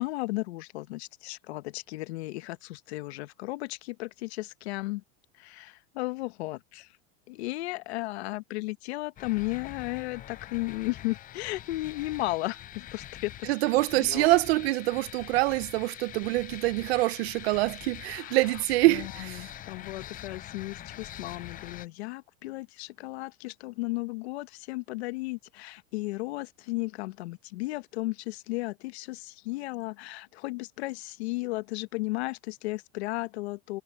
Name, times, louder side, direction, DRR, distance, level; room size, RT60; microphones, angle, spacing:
voice 1, 0.0-5.0 5.4-6.9 7.3-13.5 14.0-14.3 18.1-18.4 18.9-33.8, left 21 dB, 80° left, 1.3 m, -35 dB
sound 1, 9.2-21.9, left 12 dB, 25° left, 0.5 m, -44 dB
voice 2, 13.5-19.5, right 20 dB, 75° right, 0.8 m, -25 dB
supercardioid pair, 125°, 32 cm